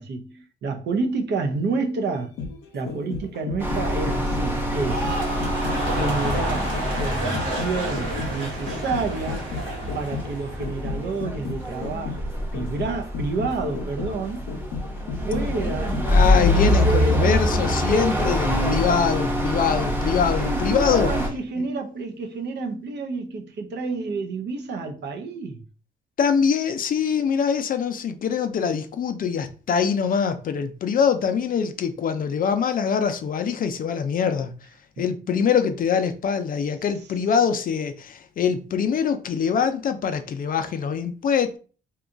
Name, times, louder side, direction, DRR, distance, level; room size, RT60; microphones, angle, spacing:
voice 1, 0.0-2.3 2.7-5.1 5.8-6.7 7.0-9.5 9.9-14.5 15.2-16.2 16.5-17.2 20.2-25.6 35.0-35.1, right 3 dB, 60° right, 0.6 m, -29 dB
sound 1, 2.1-18.0 18.3-18.4, left 4 dB, 90° left, 0.6 m, -34 dB
sound 2, 3.6-21.3, left 1 dB, 10° right, 0.8 m, -25 dB
sound 3, 4.7-11.0 11.3-11.8, right 1 dB, 90° right, 0.9 m, -31 dB
voice 2, 16.1-21.1 26.2-34.5 35.0-41.6, left 6 dB, 45° left, 0.4 m, -23 dB
2.8 x 2.3 x 2.5 m
cardioid pair, 90°, 20 cm